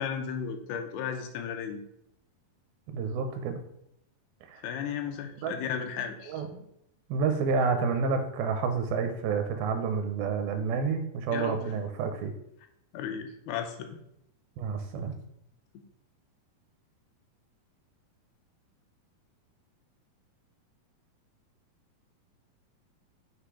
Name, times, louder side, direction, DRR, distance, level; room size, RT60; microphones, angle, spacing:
voice 1, 0.0-1.8 4.6-6.4 11.3-11.6 12.9-14.0, left 7 dB, 90° left, 5 dB, 2.7 m, -34 dB
voice 2, 2.9-3.6 4.5-4.6 5.4-5.5 6.3-6.6 7.1-12.3 14.6-15.1, right 5 dB, 85° right, 7 dB, 2.4 m, -29 dB
7.8 x 3.0 x 4.8 m, 0.76 s
omnidirectional pair, 4.4 m